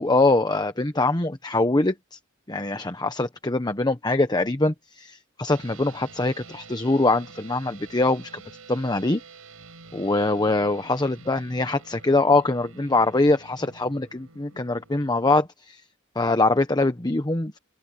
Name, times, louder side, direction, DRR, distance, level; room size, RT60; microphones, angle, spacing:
voice 1, 0.0-2.2 2.5-8.4 8.7-9.2 9.9-15.8 16.1-17.6, left 2 dB, 20° left, 1.1 m, -23 dB
sound 1, 5.5-15.5, right 4 dB, 85° right, 4.7 m, -48 dB
head